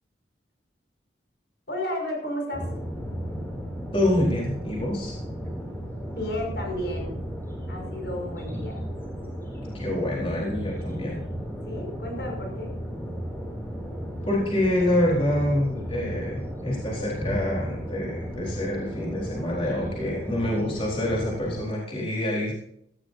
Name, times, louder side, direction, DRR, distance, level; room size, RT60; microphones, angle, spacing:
voice 1, 1.7-2.7 6.2-7.2 7.7-8.8 11.6-12.7, left 1 dB, 70° left, 1 dB, 6.0 m, -32 dB
sound 1, 2.5-21.6, equal, 10° left, 4.4 m, -34 dB
voice 2, 3.9-5.2 9.7-11.2 14.2-22.5, left 1 dB, 30° left, -4 dB, 4.2 m, -26 dB
17.5 x 15.0 x 2.7 m, 0.73 s
head